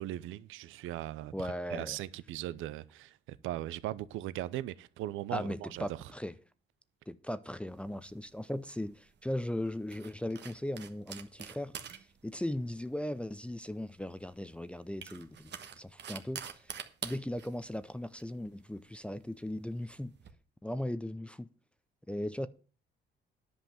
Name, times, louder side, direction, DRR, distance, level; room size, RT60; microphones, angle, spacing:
voice 1, 0.0-6.0, right 14 dB, 90° right, 0.6 m, -39 dB
voice 2, 1.3-2.0 5.3-6.3 7.1-16.7 17.0-20.1 20.6-21.5 22.1-22.5, left 1 dB, 5° left, 0.6 m, -38 dB
sound 1, 7.7-20.3, right 8 dB, 60° right, 1.3 m, -48 dB
10.5 x 5.5 x 7.7 m
cardioid pair, 90°, 20 cm